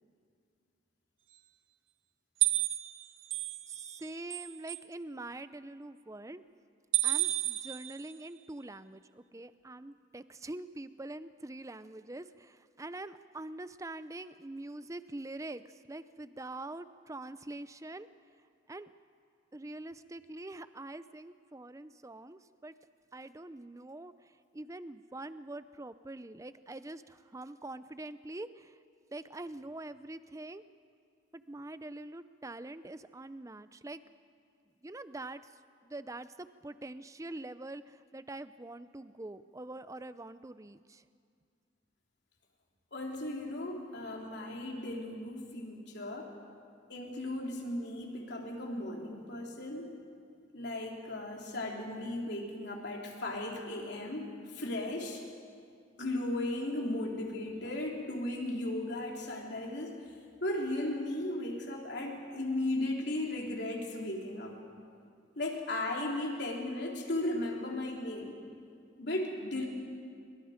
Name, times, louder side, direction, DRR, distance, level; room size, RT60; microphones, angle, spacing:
sound 1, 2.4-4.0 4.3-4.8 6.9-8.1, right 15 dB, 85° right, 0.8 m, -31 dB
voice 1, 3.7-6.4 7.0-18.1 18.7-18.9 19.5-22.7 23.1-24.1 24.5-28.7 29.1-30.6 31.3-34.0 34.8-35.4 35.8-41.0, right 2 dB, 15° right, 13 dB, 0.5 m, -44 dB
voice 2, 42.9-46.3 46.9-49.9 50.5-55.2 56.0-60.0 60.4-64.6 65.4-68.4 69.0-69.7, left 1 dB, 60° left, 0 dB, 3.6 m, -36 dB
27.0 x 25.0 x 5.1 m, 2.2 s
head